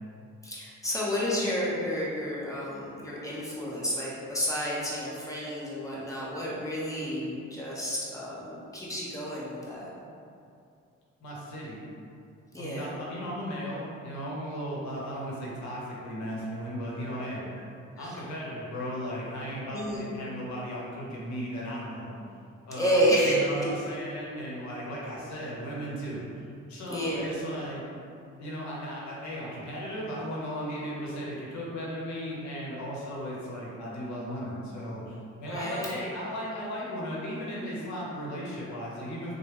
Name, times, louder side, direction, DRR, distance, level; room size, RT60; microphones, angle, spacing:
voice 1, 0.4-9.9 12.5-12.9 18.0-18.1 19.7-20.0 22.7-23.4 26.9-27.3 35.5-35.9, equal, 10° left, -7 dB, 0.8 m, -30 dB
voice 2, 11.2-11.9 12.6-17.5 18.0-22.2 22.7-27.9 28.4-39.3, equal, 70° left, -4 dB, 0.9 m, -36 dB
3.3 x 2.1 x 3.0 m, 2.5 s
cardioid pair, 90°, 30 cm